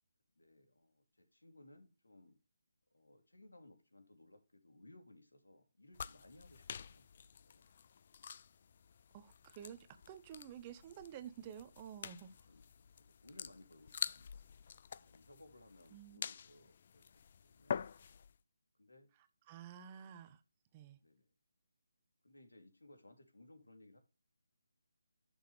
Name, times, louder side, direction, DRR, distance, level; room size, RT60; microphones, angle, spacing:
voice 1, 0.4-2.4 2.9-7.8 12.5-14.4 15.0-17.1 17.4-17.8 18.8-19.1 21.0-21.3 22.2-24.0, left 2 dB, 90° left, 2.8 m, -62 dB
sound 1, 5.9-18.4, left 7 dB, 45° left, 0.4 m, -47 dB
voice 2, 9.1-12.3 15.9-16.2 19.5-20.4 20.7-21.0, right 9 dB, 25° right, 1.0 m, -51 dB
10.5 x 6.5 x 3.3 m
figure-of-eight pair, 155°, 0 cm